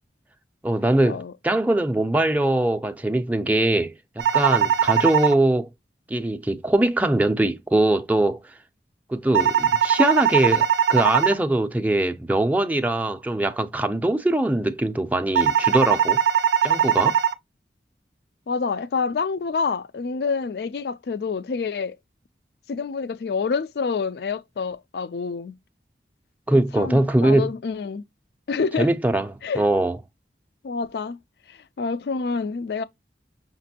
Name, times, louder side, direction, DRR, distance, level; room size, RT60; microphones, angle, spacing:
voice 1, 0.6-5.7 6.1-8.4 9.1-16.2 16.6-17.1 26.5-27.5 28.8-30.0, right 1 dB, 10° right, 0.4 m, -22 dB
sound 1, 4.2-5.3 9.3-11.3 15.3-17.3, right 9 dB, 80° right, 0.4 m, -20 dB
voice 2, 18.5-22.0 22.7-25.6 26.5-28.0 28.5-28.9 29.4-29.6 30.6-31.2 31.5-32.8, left 5 dB, 65° left, 0.4 m, -27 dB
6.0 x 2.5 x 2.8 m
head